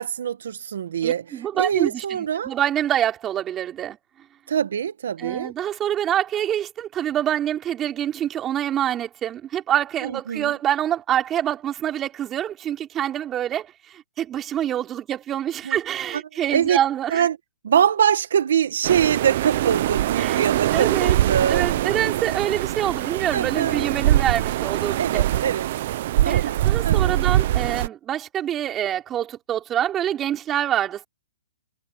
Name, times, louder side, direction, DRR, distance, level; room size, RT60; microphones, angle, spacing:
voice 1, 0.0-1.2 1.5-2.5 4.5-5.5 10.0-10.5 15.7-15.8 16.1-16.2 16.5-16.8 17.1-17.4 17.6-21.7 23.3-23.8 25.0-25.7 26.2-26.6 26.8-27.2, right 8 dB, 70° right, 1.9 m, -23 dB
voice 2, 1.0-4.0 5.2-17.2 20.2-20.4 20.7-21.2 21.5-25.2 26.3-31.1, right 11 dB, 20° right, 3.8 m, -26 dB
sound 1, 18.8-27.9, right 13 dB, 50° right, 1.0 m, -23 dB
hypercardioid pair, 140°, 0 cm